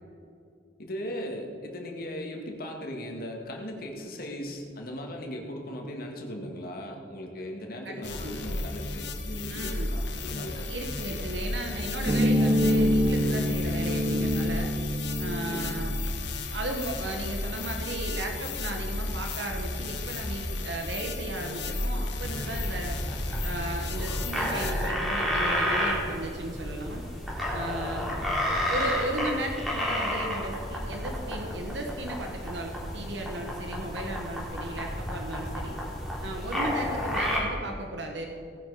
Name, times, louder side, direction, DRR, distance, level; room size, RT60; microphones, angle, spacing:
voice 1, 0.8-10.7 15.5-16.0 28.0-28.4 36.7-37.0, equal, 55° left, 2 dB, 2.1 m, -38 dB
voice 2, 7.8-8.5 9.5-9.9 10.5-14.7 15.2-15.9 16.5-23.0 23.4-27.0 27.5-28.0 28.7-35.8 36.2-38.3, right 1 dB, 90° right, 3 dB, 1.5 m, -35 dB
sound 1, 8.0-24.9, left 2 dB, 85° left, 1.6 m, -33 dB
sound 2, 12.1-16.1, equal, 25° right, 0.9 m, -25 dB
sound 3, 22.2-37.4, equal, ahead, 3.6 m, -31 dB
18.0 x 10.0 x 5.0 m, 2.5 s
head